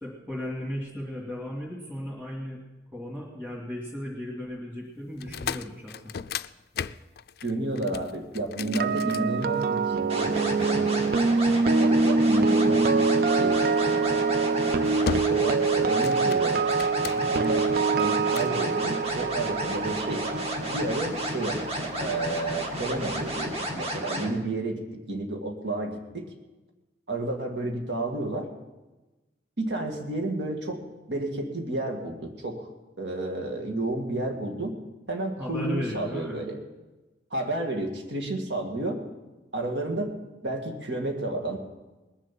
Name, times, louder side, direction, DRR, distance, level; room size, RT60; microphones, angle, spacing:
voice 1, 0.0-2.6 2.9-6.1 35.4-36.4, equal, 10° right, -6 dB, 2.5 m, -35 dB
sound 1, 5.1-9.9 10.6-11.9 13.7-13.9 14.4-14.7 15.1-15.6 15.9-17.5 18.0-18.6, left 6 dB, 55° left, 0.4 m, -36 dB
voice 2, 7.4-11.0 11.3-14.2 15.2-16.6 17.1-17.7 17.9-20.3 20.7-24.8 25.1-26.3 27.1-28.5 29.6-30.8 31.1-32.7 33.0-34.8 35.1-36.6 37.3-39.0 39.5-40.1 40.4-41.6, right 2 dB, 75° right, 2 dB, 1.9 m, -31 dB
sound 2, 8.6-22.6 22.9-23.2, right 4 dB, 50° right, 0.4 m, -25 dB
sound 3, 10.1-24.3, right 1 dB, 35° right, 1.8 m, -32 dB
20.5 x 7.4 x 7.5 m, 1.1 s
head